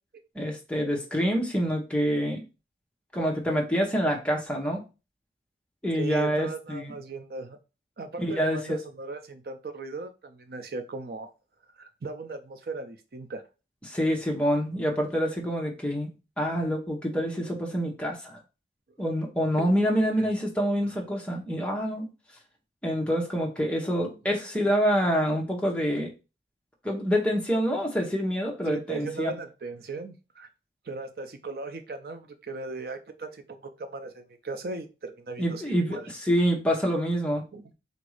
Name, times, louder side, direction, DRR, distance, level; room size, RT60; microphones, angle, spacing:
voice 1, 0.3-2.4 3.1-4.8 5.8-6.9 8.2-8.8 13.9-16.1 16.4-18.4 19.0-22.1 22.8-26.1 26.8-29.3 35.4-37.4, equal, 5° left, -1 dB, 0.9 m, -26 dB
voice 2, 5.9-7.6 8.0-11.3 11.8-13.4 19.6-19.7 20.2-20.3 28.7-30.5 30.8-36.1 37.5-37.7, right 3 dB, 55° right, 8 dB, 0.5 m, -37 dB
3.9 x 2.6 x 4.8 m, 0.30 s
head